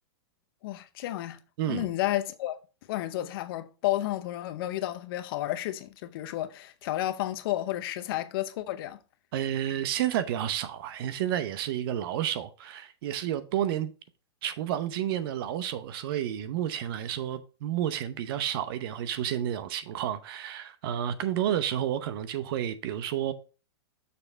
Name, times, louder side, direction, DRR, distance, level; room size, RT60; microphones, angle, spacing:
voice 1, 0.6-1.4 1.7-2.6 2.9-9.0, left 14 dB, 55° left, 0.8 m, -31 dB
voice 2, 1.6-1.9 9.3-13.9 14.4-23.3, right 11 dB, 55° right, 0.7 m, -30 dB
6.9 x 3.2 x 6.0 m
hypercardioid pair, 140°, 14 cm